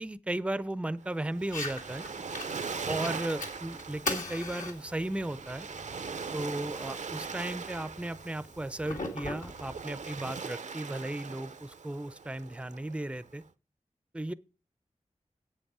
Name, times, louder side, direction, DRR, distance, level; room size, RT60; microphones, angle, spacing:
voice 1, 0.0-2.1 2.8-5.7 6.3-13.4 14.1-14.3, right 1 dB, 10° right, 0.5 m, -35 dB
Waves surf, 1.0-13.4, right 5 dB, 70° right, 0.6 m, -41 dB
Fire, 1.4-10.4, left 2 dB, 85° left, 2.3 m, -41 dB
8.3 x 7.9 x 4.8 m
wide cardioid pair, 65°, 13 cm